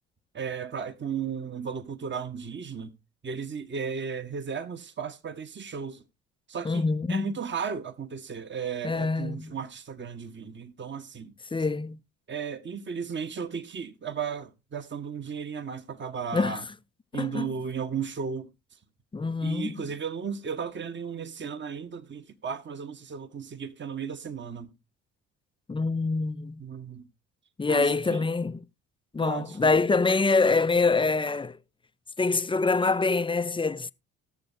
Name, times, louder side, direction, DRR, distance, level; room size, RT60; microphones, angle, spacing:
voice 1, 0.3-3.0 3.2-6.0 6.5-11.3 12.3-16.6 17.1-18.5 19.4-24.7 26.6-27.1 27.7-28.2 29.2-29.8 30.1-30.2, right 6 dB, 30° right, 1.1 m, -35 dB
voice 2, 6.6-7.3 8.8-9.6 11.5-12.0 16.3-16.6 17.1-17.5 19.1-19.8 25.7-26.6 27.6-28.6 29.1-31.6 32.2-33.9, left 3 dB, 15° left, 0.5 m, -25 dB
19.5 x 7.0 x 2.6 m
hypercardioid pair, 55°, 35 cm